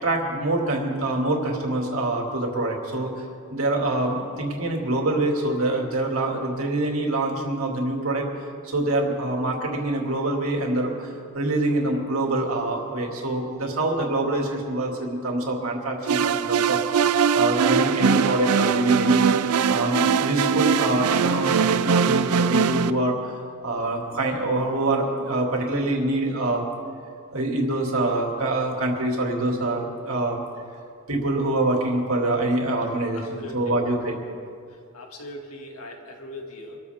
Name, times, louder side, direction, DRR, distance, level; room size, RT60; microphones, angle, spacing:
voice 1, 0.0-3.2 3.5-8.3 8.6-19.3 19.7-23.3 23.6-26.7 27.3-30.4 31.1-34.2, right 2 dB, 70° right, 0 dB, 2.5 m, -25 dB
sound 1, 16.1-22.9, right 6 dB, 85° right, 0.5 m, -21 dB
voice 2, 33.1-33.6 34.7-36.8, left 1 dB, 80° left, 1 dB, 2.2 m, -40 dB
25.0 x 13.5 x 3.6 m, 2.3 s
head